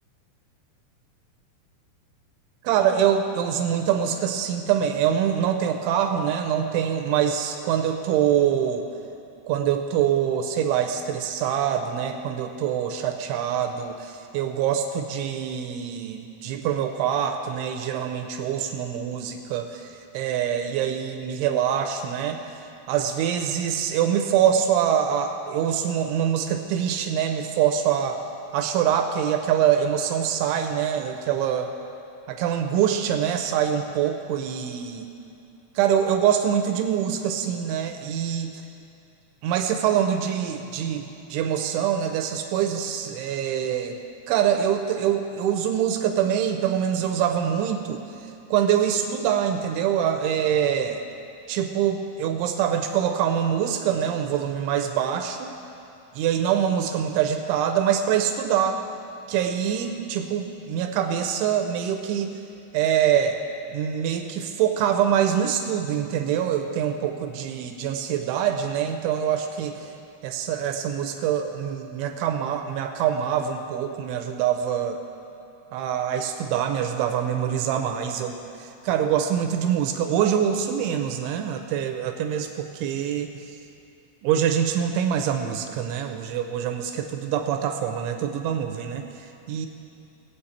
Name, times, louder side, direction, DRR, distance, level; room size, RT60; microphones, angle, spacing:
voice 1, 2.6-8.9 9.5-22.4 22.9-28.2 28.5-31.7 32.3-35.1 35.8-38.5 39.4-44.0 44.3-48.0 48.5-51.0 51.5-55.5 56.1-58.8 59.3-62.4 62.7-63.4 63.7-69.9 70.2-75.0 75.7-83.3 84.2-89.7, right 9 dB, 85° right, 5 dB, 2.8 m, -24 dB
20.5 x 8.3 x 4.3 m, 2.8 s
omnidirectional pair, 5.8 m